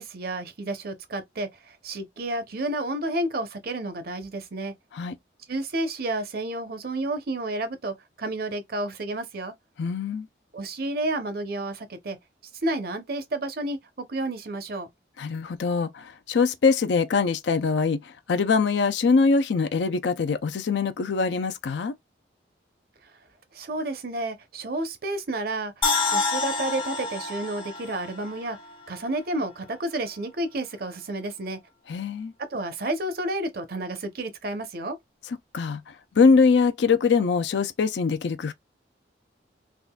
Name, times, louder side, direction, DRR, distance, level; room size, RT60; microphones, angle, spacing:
voice 1, 0.0-4.7 5.5-9.5 10.5-12.2 12.6-13.8 14.1-14.9 23.5-28.6 28.9-31.6 32.5-35.0, right 1 dB, 55° right, 0.7 m, -31 dB
voice 2, 9.8-10.3 15.2-21.9 31.9-32.3 35.5-35.8 36.2-38.5, left 4 dB, 75° left, 0.4 m, -23 dB
sound 1, 25.8-29.0 29.4-29.5, left 3 dB, 30° left, 0.6 m, -28 dB
3.6 x 2.4 x 2.2 m
head